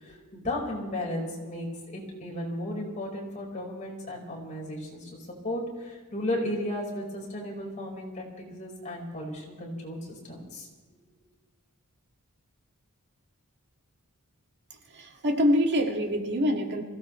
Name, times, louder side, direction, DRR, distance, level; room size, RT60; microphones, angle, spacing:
voice 1, 0.0-10.7, left 1 dB, 35° left, -2 dB, 4.6 m, -35 dB
voice 2, 14.7-16.8, equal, 50° right, 2 dB, 2.0 m, -25 dB
25.5 x 16.5 x 3.2 m, 1.4 s
head